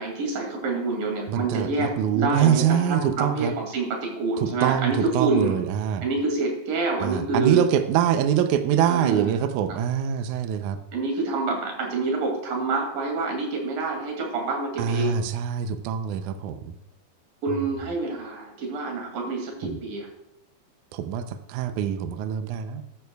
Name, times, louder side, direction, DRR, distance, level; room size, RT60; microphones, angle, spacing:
voice 1, 0.0-5.6 6.0-7.6 8.9-9.3 10.9-15.2 17.4-20.1, right 3 dB, 65° right, 1 dB, 4.0 m, -27 dB
voice 2, 1.3-3.5 4.4-6.0 7.0-10.8 14.8-16.7 19.6-19.8 20.9-22.8, right 9 dB, 85° right, 9 dB, 1.7 m, -24 dB
13.5 x 11.0 x 2.3 m, 0.82 s
omnidirectional pair, 4.4 m